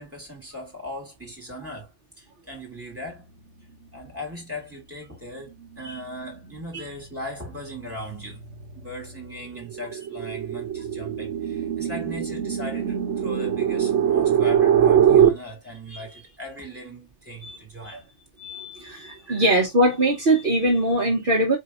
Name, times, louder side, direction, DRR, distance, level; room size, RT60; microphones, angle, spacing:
voice 1, 0.0-3.3 3.9-8.4 8.7-18.1 19.2-19.5, equal, 10° right, 2.7 m, -38 dB
sound 1, 5.6-6.0 6.4-15.3, right 9 dB, 75° right, 1.2 m, -23 dB
voice 2, 18.4-21.6, right 1 dB, 50° right, 1.3 m, -22 dB
5.1 x 4.0 x 2.6 m
omnidirectional pair, 1.2 m